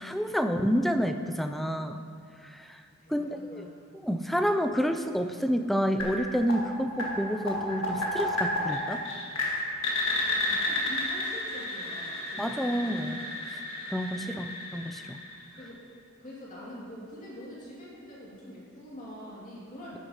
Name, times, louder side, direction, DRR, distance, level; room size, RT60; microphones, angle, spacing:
voice 1, 0.0-2.0 2.4-2.8 3.1-3.7 4.0-9.0 12.4-13.2 13.5-13.6 13.9-15.2, equal, ahead, 7 dB, 0.3 m, -29 dB
voice 2, 3.0-3.8 10.2-13.3 14.2-14.4 15.6-15.8 16.2-20.0, equal, 35° left, -7 dB, 2.4 m, -45 dB
sound 1, 6.0-15.8, left 1 dB, 65° left, 1.8 m, -32 dB
13.0 x 8.6 x 2.9 m, 2.4 s
head